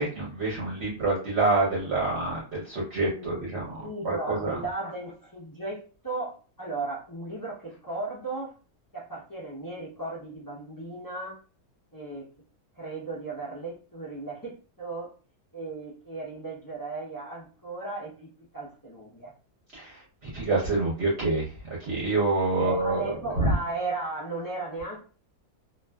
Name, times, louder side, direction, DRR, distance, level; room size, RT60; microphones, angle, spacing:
voice 1, 0.0-4.6 19.7-23.1 23.4-23.5, right 2 dB, 55° right, -5 dB, 0.9 m, -27 dB
voice 2, 3.1-8.5 8.9-11.4 11.9-12.3 12.8-15.1 15.5-19.3 22.5-25.0, right 3 dB, 30° left, -6 dB, 0.4 m, -36 dB
2.4 x 2.4 x 2.2 m, 0.38 s
omnidirectional pair, 1.5 m